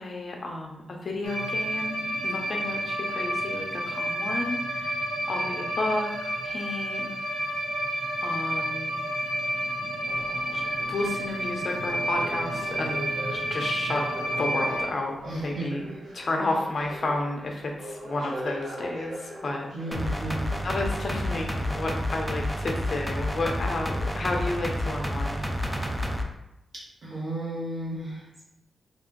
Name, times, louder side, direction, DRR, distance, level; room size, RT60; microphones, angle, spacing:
voice 1, 0.0-5.0 5.3-6.1 6.4-7.1 8.2-9.0 10.5-10.6 10.9-13.0 13.3-14.1 14.4-15.8 16.1-19.7 20.6-25.5, left 2 dB, 45° left, 1 dB, 0.6 m, -31 dB
sound 1, 1.2-14.8, right 1 dB, 65° right, 0.6 m, -30 dB
sound 2, 10.0-21.6 22.3-22.4, equal, 90° right, 1.0 m, -42 dB
voice 2, 15.3-15.7 19.7-20.5 27.0-28.4, right 1 dB, 50° right, -8 dB, 1.2 m, -34 dB
sound 3, 19.9-26.2, left 1 dB, 5° right, 0.3 m, -30 dB
3.3 x 2.7 x 3.7 m, 0.87 s
wide cardioid pair, 170°, 0 cm